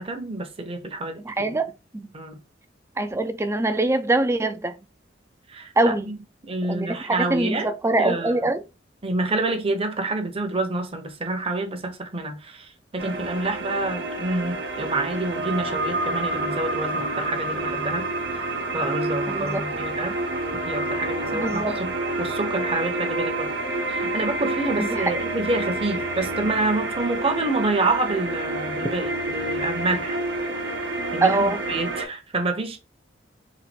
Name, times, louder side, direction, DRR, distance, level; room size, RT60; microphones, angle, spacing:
voice 1, 0.0-1.6 2.1-2.4 5.5-6.2 6.4-7.7 8.0-8.4 9.0-20.2 20.5-23.5 23.9-30.2 31.1-32.8, right 2 dB, 30° right, 0.8 m, -28 dB
voice 2, 1.3-2.1 3.0-4.8 5.8-6.1 6.7-8.6 19.3-19.7 21.3-21.8 24.8-25.1 31.2-31.6, right 2 dB, 15° right, 0.4 m, -24 dB
sound 1, 13.0-32.0, right 2 dB, 65° right, 0.9 m, -28 dB
4.1 x 2.5 x 4.4 m
head